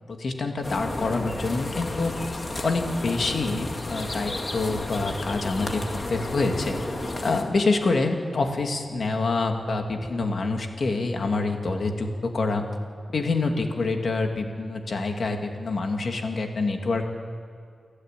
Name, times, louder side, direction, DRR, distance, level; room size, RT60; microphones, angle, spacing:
voice 1, 0.1-2.1 2.6-6.8 7.2-12.6 13.1-17.0, left 3 dB, 60° left, 3 dB, 2.5 m, -26 dB
sound 1, 0.6-7.4, left 2 dB, 35° left, 2.2 m, -32 dB
29.5 x 11.5 x 9.2 m, 2.3 s
wide cardioid pair, 105°, 0 cm